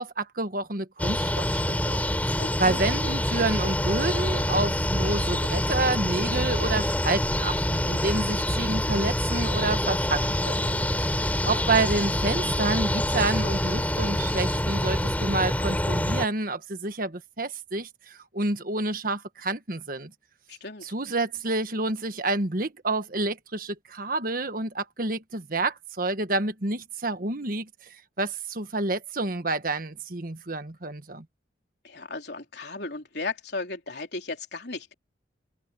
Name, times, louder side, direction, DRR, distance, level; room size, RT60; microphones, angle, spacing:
voice 1, 0.0-2.0 2.3-20.1 20.8-31.2, right 2 dB, 50° right, 1.5 m, -29 dB
sound 1, 1.0-16.3, left 1 dB, 10° left, 5.4 m, -26 dB
voice 2, 2.4-2.8 20.5-20.9 31.8-34.9, left 3 dB, 60° left, 3.8 m, -35 dB
sound 2, 3.4-15.4, equal, 40° left, 7.2 m, -41 dB
open air
head